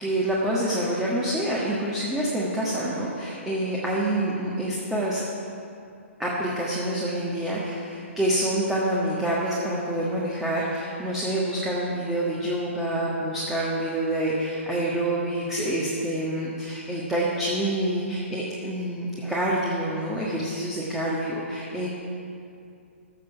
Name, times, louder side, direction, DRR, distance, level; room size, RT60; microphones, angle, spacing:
voice 1, 0.0-5.2 6.2-21.9, right 1 dB, 5° right, -7 dB, 1.5 m, -27 dB
15.0 x 6.8 x 5.8 m, 2.5 s
figure-of-eight pair, 130°, 7 cm